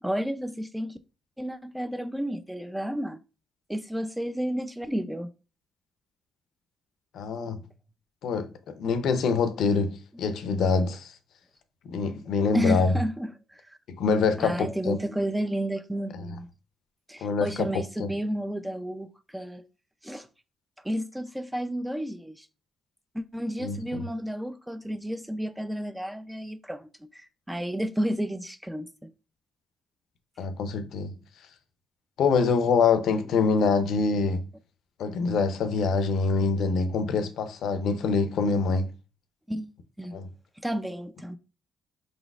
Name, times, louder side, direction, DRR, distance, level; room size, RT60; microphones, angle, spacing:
voice 1, 0.0-1.0 1.4-3.2 3.7-5.3 9.6-9.7 12.5-13.8 14.4-16.5 17.1-19.6 20.0-20.3 20.8-22.5 23.1-29.1 39.5-40.2 40.6-41.4, equal, 5° right, 0.4 m, -32 dB
voice 2, 7.1-7.6 8.2-11.1 11.9-12.9 13.9-15.0 16.1-16.3 17.2-18.1 23.6-24.0 30.4-31.2 32.2-34.4 35.0-38.9 40.1-40.3, left 4 dB, 75° left, 0.5 m, -25 dB
4.7 x 4.0 x 2.3 m
cardioid pair, 90°, 0 cm